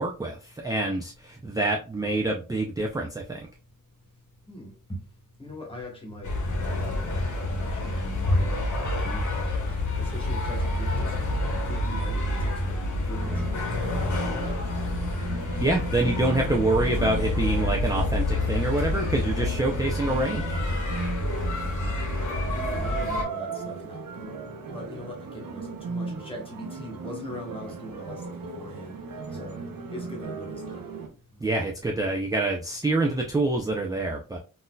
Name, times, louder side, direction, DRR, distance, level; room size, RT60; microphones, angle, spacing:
voice 1, 0.0-3.5 15.6-20.6 31.4-34.4, right 2 dB, 10° right, 0.3 m, -26 dB
voice 2, 4.5-5.0 5.4-6.3 6.8-11.1 11.5-14.6 16.0-16.2 22.5-24.4 24.7-29.0 29.3-29.6 29.9-30.8, left 1 dB, 15° left, 1.0 m, -41 dB
sound 1, 6.2-23.2, left 2 dB, 60° left, 1.0 m, -28 dB
sound 2, 13.2-31.1, right 4 dB, 80° right, 0.7 m, -36 dB
3.9 x 2.6 x 2.2 m
wide cardioid pair, 165°, 34 cm